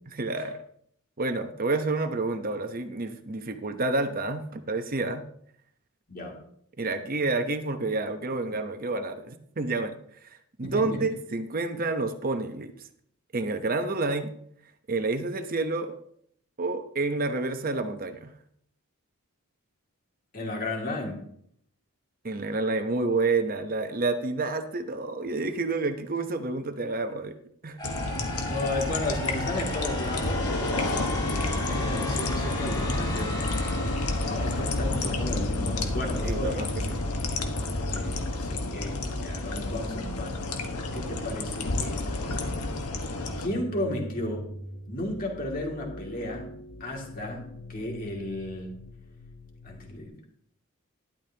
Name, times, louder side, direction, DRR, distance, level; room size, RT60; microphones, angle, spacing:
voice 1, 0.1-0.6 1.2-5.2 6.8-10.0 10.3-12.9 13.3-14.3 14.9-16.0 16.6-18.3 22.2-27.4 27.6-27.9 36.2-37.0, right 3 dB, 40° right, 8 dB, 0.9 m, -29 dB
voice 2, 20.3-21.3 28.5-33.5 34.2-36.7 37.9-42.7 43.4-44.5 44.9-46.5 46.8-48.8 49.6-50.1, left 1 dB, 40° left, 0 dB, 2.5 m, -34 dB
sound 1, 27.8-43.5, left 2 dB, 90° left, 1.5 m, -30 dB
sound 2, 27.8-35.7, left 1 dB, 20° left, 2.1 m, -37 dB
sound 3, 36.4-50.1, left 1 dB, 70° left, 1.2 m, -43 dB
12.5 x 11.5 x 2.9 m, 0.67 s
head